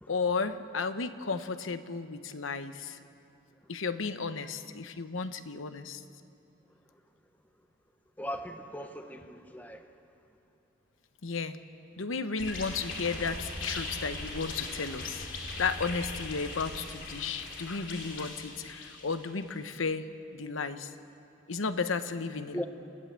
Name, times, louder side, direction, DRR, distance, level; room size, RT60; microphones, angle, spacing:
voice 1, 0.1-3.0 3.7-6.0 11.2-11.6 12.0-15.3 15.6-20.1 20.3-20.9 21.5-22.7, left 4 dB, 85° left, 11 dB, 1.0 m, -33 dB
voice 2, 8.2-9.9 22.5-22.7, equal, 10° left, 6 dB, 1.1 m, -38 dB
sound 1, 12.4-19.4, left 2 dB, 70° left, 3.0 m, -40 dB
28.5 x 15.0 x 7.4 m, 2.8 s
head